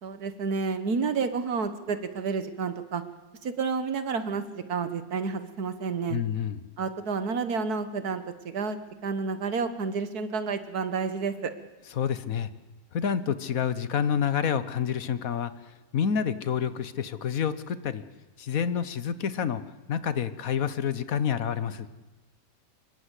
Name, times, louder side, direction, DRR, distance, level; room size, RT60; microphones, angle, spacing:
voice 1, 0.0-3.0 3.4-6.2 6.8-8.8 9.0-11.5, right 5 dB, 80° right, 10 dB, 1.9 m, -30 dB
voice 2, 6.1-6.6 12.0-12.5 12.9-15.5 15.9-18.0 18.4-19.6 19.9-21.9, left 8 dB, 65° left, 13 dB, 1.4 m, -28 dB
25.0 x 22.0 x 8.3 m, 1.2 s
omnidirectional pair, 1.6 m